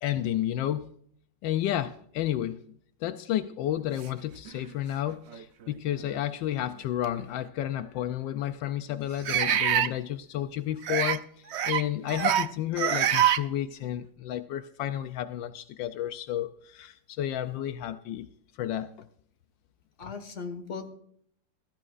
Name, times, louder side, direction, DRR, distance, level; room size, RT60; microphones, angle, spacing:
voice 1, 0.0-0.9 1.4-2.6 3.0-18.3 18.6-18.9, left 12 dB, 80° left, 10 dB, 1.3 m, -31 dB
sound 1, 4.5-4.6 5.3-5.4 7.0-7.1 9.3-9.9 10.8-11.2 11.5-11.8 12.1-12.5 12.8-13.4, right 10 dB, 80° right, 0.6 m, -25 dB
voice 2, 20.0-20.9, left 5 dB, 40° left, 7 dB, 1.9 m, -38 dB
16.0 x 14.5 x 2.5 m, 0.63 s
omnidirectional pair, 2.0 m